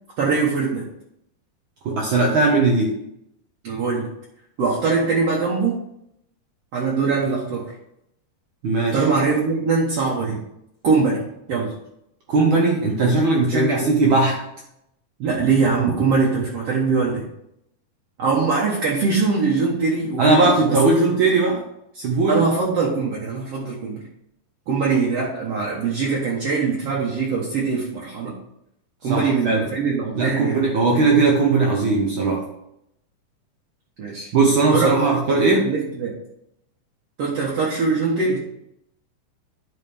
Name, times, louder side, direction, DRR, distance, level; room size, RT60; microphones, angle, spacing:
voice 1, 0.2-0.8 3.6-4.1 4.6-5.8 6.7-7.8 8.9-10.4 10.8-11.2 11.5-11.7 13.5-14.1 15.2-17.2 18.2-20.4 20.9-21.0 22.3-24.0 24.7-28.3 29.0-30.7 34.0-34.3 34.6-35.0 35.6-36.1 37.2-38.4, right 4 dB, 60° right, -4 dB, 1.9 m, -22 dB
voice 2, 1.8-2.9 8.6-9.0 12.3-14.4 20.2-21.6 21.9-22.4 29.0-29.6 30.1-32.4 34.3-35.7, right 3 dB, 90° right, -1 dB, 1.1 m, -18 dB
11.5 x 4.9 x 3.4 m, 0.79 s
omnidirectional pair, 3.7 m